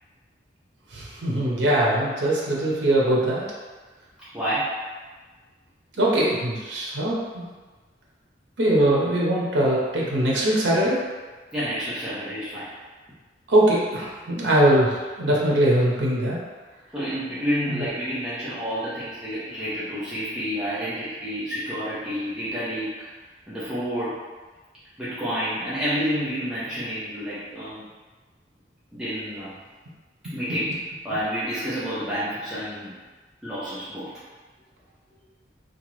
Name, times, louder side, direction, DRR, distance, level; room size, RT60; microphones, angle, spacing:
voice 1, 0.9-3.5 6.0-7.4 8.6-11.0 13.5-16.4 17.7-17.9, right 1 dB, 80° right, -5 dB, 0.7 m, -21 dB
voice 2, 4.2-4.8 8.8-8.9 11.5-12.7 16.9-23.1 23.5-24.2 25.0-27.8 28.9-29.6 30.3-30.8 31.0-32.9 33.4-34.1, equal, 5° right, -13 dB, 0.6 m, -29 dB
2.9 x 2.3 x 3.0 m, 1.3 s
head